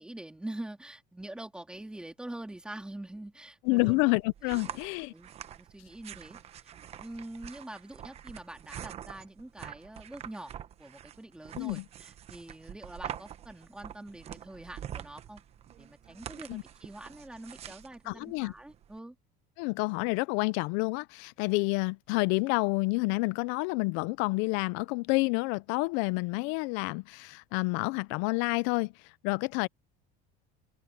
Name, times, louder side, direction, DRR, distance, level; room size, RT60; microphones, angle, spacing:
voice 1, 0.0-4.2 4.4-4.8 5.1-10.5 10.8-15.4 15.8-19.1, right 1 dB, 5° right, 2.7 m, -45 dB
voice 2, 3.6-5.1 11.6-11.8 16.5-16.6 18.1-18.5 19.6-29.7, left 26 dB, 70° left, 0.4 m, -29 dB
sound 1, 3.7-19.0, right 10 dB, 30° right, 1.0 m, -46 dB
open air
cardioid pair, 165°, 21 cm